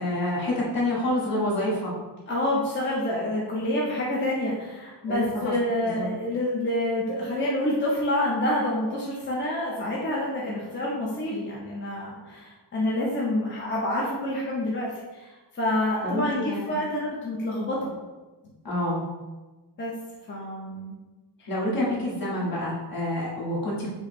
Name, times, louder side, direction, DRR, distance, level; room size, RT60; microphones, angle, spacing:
voice 1, 0.0-1.9 5.1-5.5 5.8-6.1 16.0-16.7 18.6-19.0 21.5-23.9, left 1 dB, 55° left, -5 dB, 1.4 m, -27 dB
voice 2, 2.3-17.9 19.8-19.9 20.3-21.0 21.4-21.5, left 1 dB, 25° left, -4 dB, 0.6 m, -28 dB
5.6 x 2.0 x 4.2 m, 1.2 s
wide cardioid pair, 165°, 43 cm